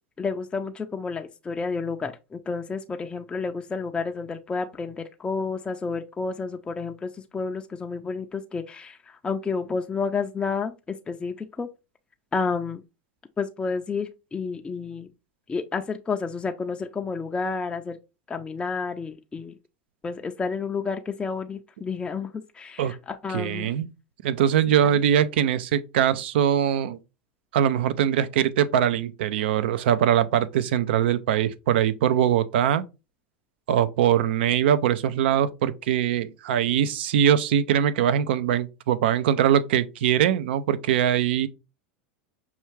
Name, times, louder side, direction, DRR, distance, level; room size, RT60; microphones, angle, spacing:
voice 1, 0.2-11.7 12.3-12.8 13.4-15.1 15.5-18.0 18.3-19.6 20.0-23.7 24.8-24.9, left 4 dB, 15° left, 0.4 m, -30 dB
voice 2, 23.3-23.9 24.2-27.0 27.5-32.8 33.7-41.5, right 10 dB, 75° right, 0.4 m, -22 dB
5.5 x 2.4 x 3.2 m
hypercardioid pair, 100°, 6 cm